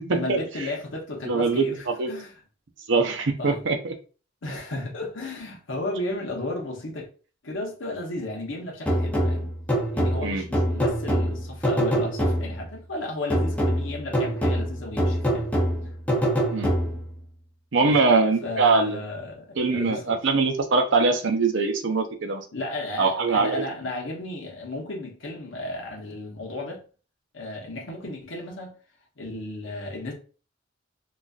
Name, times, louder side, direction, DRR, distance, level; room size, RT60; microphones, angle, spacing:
voice 1, 0.1-2.3 3.4-3.6 4.4-7.1 7.4-9.5 9.9-15.5 17.8-18.0 18.4-20.2 22.5-26.8 27.3-28.7 29.2-30.1, left 2 dB, 70° left, 0.9 m, -34 dB
voice 2, 1.2-2.1 2.9-3.9 10.2-10.4 16.5-16.7 17.7-19.0 19.6-22.4 23.0-23.6, right 4 dB, 65° right, 0.6 m, -22 dB
sound 1, 8.9-12.7 13.3-17.2, equal, 10° left, 0.6 m, -25 dB
4.0 x 2.4 x 2.4 m
head